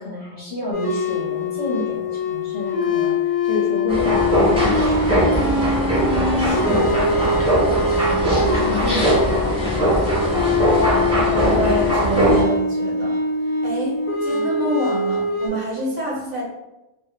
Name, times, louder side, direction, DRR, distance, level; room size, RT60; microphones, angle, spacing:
voice 1, 0.0-10.1 14.4-14.5, left 1 dB, 40° left, -6 dB, 0.7 m, -31 dB
sound 1, 0.7-15.5, left 3 dB, 65° left, 0.3 m, -23 dB
sound 2, 3.9-12.4, equal, 5° right, 0.7 m, -20 dB
voice 2, 11.5-13.1 13.6-16.4, right 1 dB, 45° right, -5 dB, 0.6 m, -26 dB
2.2 x 2.1 x 3.1 m, 0.98 s
omnidirectional pair, 1.2 m